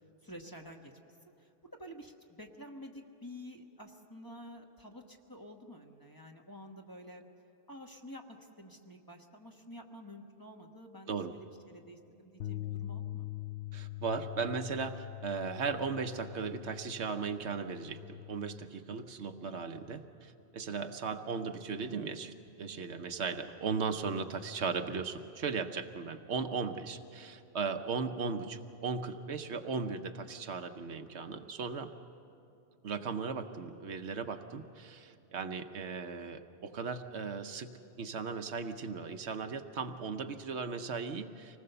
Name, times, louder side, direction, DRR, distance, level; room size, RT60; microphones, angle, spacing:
voice 1, 0.2-0.9 1.4-1.5 1.8-7.2 7.7-13.3 21.1-21.3, equal, 20° left, 1 dB, 1.2 m, -50 dB
sound 1, 12.4-18.7, left 14 dB, 70° left, 0.9 m, -43 dB
voice 2, 13.7-31.9 32.8-41.6, right 5 dB, 70° right, 7 dB, 1.1 m, -37 dB
25.5 x 19.0 x 6.8 m, 2.6 s
omnidirectional pair, 1.2 m